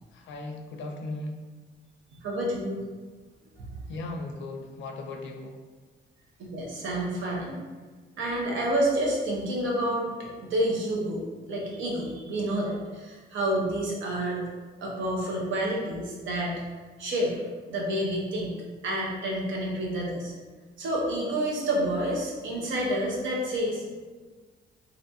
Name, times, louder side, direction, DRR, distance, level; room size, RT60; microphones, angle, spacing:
voice 1, 0.1-1.4 3.9-5.6, left 2 dB, 70° left, 3 dB, 0.4 m, -37 dB
voice 2, 2.2-2.8 6.5-7.6 8.2-10.1 10.4-14.5 14.8-16.6 17.0-17.4 17.7-18.5 18.8-20.3 20.8-24.0, right 1 dB, 75° right, -3 dB, 0.7 m, -29 dB
2.6 x 2.2 x 2.7 m, 1.4 s
cardioid pair, 90°, 20 cm